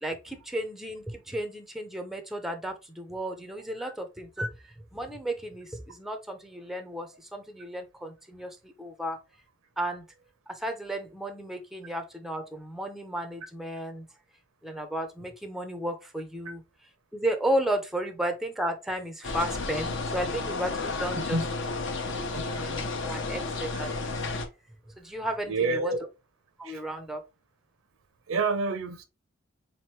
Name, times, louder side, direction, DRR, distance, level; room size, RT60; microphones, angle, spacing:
voice 1, 0.0-4.5 4.9-9.2 9.8-10.1 10.5-14.1 14.6-16.6 17.1-21.4 22.3-24.1 25.0-25.9 26.6-27.2, right 1 dB, ahead, 0.5 m, -33 dB
sound 1, 19.2-24.5, left 3 dB, 60° left, 0.7 m, -32 dB
voice 2, 25.5-26.0 26.6-26.8 28.3-29.0, right 3 dB, 75° right, 0.7 m, -28 dB
3.8 x 3.0 x 3.0 m
head